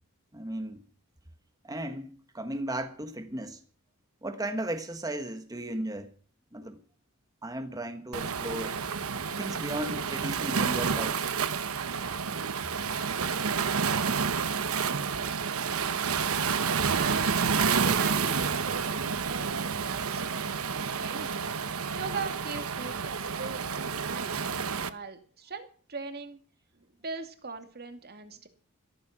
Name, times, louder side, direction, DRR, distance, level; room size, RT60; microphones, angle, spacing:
voice 1, 0.3-0.8 1.6-3.6 4.2-6.1 6.5-6.8 7.4-8.8 9.4-11.3, right 1 dB, 15° right, 1.5 m, -35 dB
Waves surf, 8.1-24.9, right 6 dB, 90° right, 1.1 m, -29 dB
voice 2, 16.9-20.5 21.0-21.4 21.9-24.4 24.9-26.4 27.0-28.5, right 4 dB, 50° right, 2.4 m, -39 dB
14.5 x 14.0 x 6.0 m
head